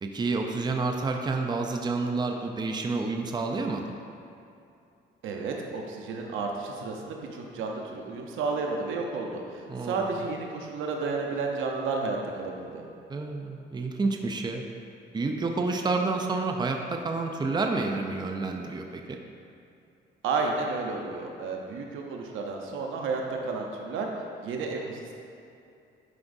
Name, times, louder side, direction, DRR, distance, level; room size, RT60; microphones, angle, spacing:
voice 1, 0.0-4.0 9.7-10.2 13.1-14.6 15.1-19.2, right 3 dB, 20° right, 3 dB, 0.5 m, -29 dB
voice 2, 5.2-12.8 20.2-24.1 24.4-25.2, right 4 dB, 85° right, 1 dB, 0.8 m, -32 dB
9.8 x 4.9 x 2.7 m, 2.6 s
cardioid pair, 90°, 20 cm